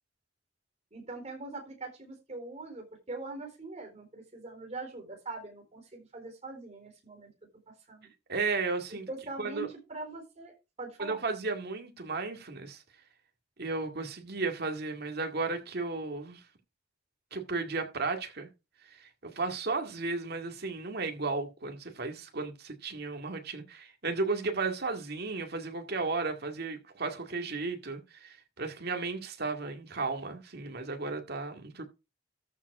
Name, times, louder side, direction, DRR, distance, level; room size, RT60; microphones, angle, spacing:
voice 1, 0.9-7.3 7.7-8.1 9.1-11.2, right 3 dB, 35° right, 4.1 m, -42 dB
voice 2, 8.3-9.1 9.4-9.7 11.0-12.8 13.6-16.4 17.3-18.5 18.8-31.8, right 3 dB, 60° right, 2.1 m, -34 dB
13.5 x 4.9 x 4.8 m
head